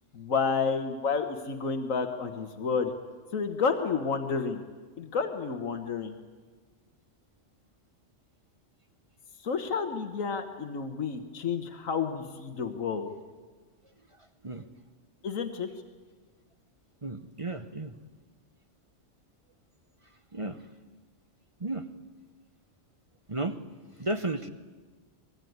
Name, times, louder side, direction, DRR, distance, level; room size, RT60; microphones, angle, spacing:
voice 1, 0.1-2.9 3.3-4.6 5.0-6.1 9.4-13.1 15.2-15.7, left 5 dB, 90° left, 7 dB, 1.7 m, -30 dB
voice 2, 17.0-17.9 20.3-20.6 21.6-21.9 23.3-23.6 24.0-24.5, right 2 dB, 30° right, 9 dB, 0.8 m, -33 dB
24.0 x 21.0 x 9.4 m, 1.4 s
omnidirectional pair, 1.3 m